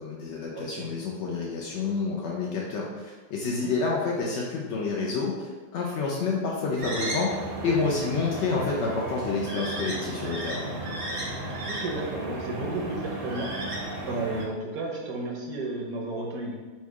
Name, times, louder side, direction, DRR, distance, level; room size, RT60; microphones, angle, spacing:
voice 1, 0.0-10.6, left 4 dB, 70° left, -3 dB, 0.6 m, -29 dB
voice 2, 0.6-0.9 3.4-3.8 7.6-7.8 11.7-13.5 14.0-16.6, right 2 dB, 65° right, -1 dB, 1.0 m, -33 dB
sound 1, 6.8-14.4, right 1 dB, 50° right, 0.7 m, -34 dB
4.3 x 2.3 x 4.6 m, 1.4 s
omnidirectional pair, 1.8 m